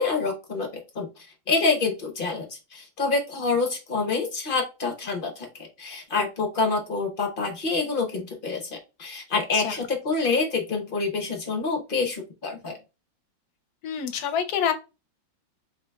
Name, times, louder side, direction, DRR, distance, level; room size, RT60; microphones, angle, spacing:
voice 1, 0.0-12.8, left 4 dB, 50° left, 0.6 m, -27 dB
voice 2, 13.8-14.7, left 8 dB, 65° left, 1.0 m, -26 dB
3.9 x 3.8 x 2.3 m
omnidirectional pair, 2.1 m